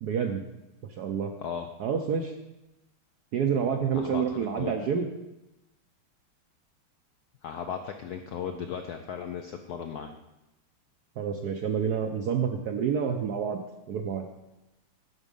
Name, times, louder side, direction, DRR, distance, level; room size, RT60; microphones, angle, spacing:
voice 1, 0.0-0.4 1.0-1.3 1.8-2.3 3.3-5.1 11.2-13.6 13.9-14.3, right 7 dB, 70° right, 4 dB, 0.9 m, -28 dB
voice 2, 3.9-4.8 7.4-10.1, left 7 dB, 90° left, 6 dB, 0.8 m, -36 dB
9.9 x 7.3 x 5.3 m, 0.95 s
omnidirectional pair, 2.4 m